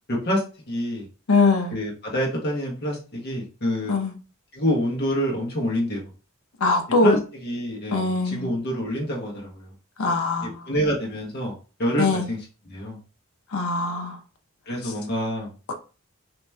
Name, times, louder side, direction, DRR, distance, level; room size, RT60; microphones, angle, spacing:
voice 1, 0.1-1.1 1.7-3.9 4.5-6.1 7.0-9.7 10.7-12.4 12.7-13.0 14.7-15.5, equal, 50° left, 1.4 m, -27 dB
voice 2, 1.3-1.8 3.9-4.1 6.6-7.2 7.9-8.5 10.0-10.5 12.0-12.3 13.5-14.2, left 3 dB, 80° left, 0.7 m, -21 dB
3.0 x 3.0 x 3.4 m
head